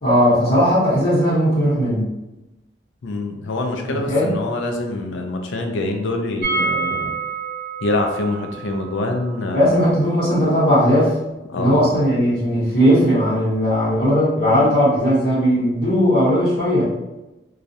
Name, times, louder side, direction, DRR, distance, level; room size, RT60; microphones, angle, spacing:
voice 1, 0.0-2.1 4.1-4.3 9.5-11.1 11.6-16.8, equal, 55° left, -11 dB, 0.9 m, -17 dB
voice 2, 3.0-7.1 7.8-9.8 11.5-11.9, left 2 dB, 85° left, 4 dB, 0.4 m, -25 dB
sound 1, 6.4-12.2 12.4-12.5 12.8-12.9, right 4 dB, 50° right, 0.6 m, -29 dB
2.3 x 2.0 x 2.6 m, 1.0 s
head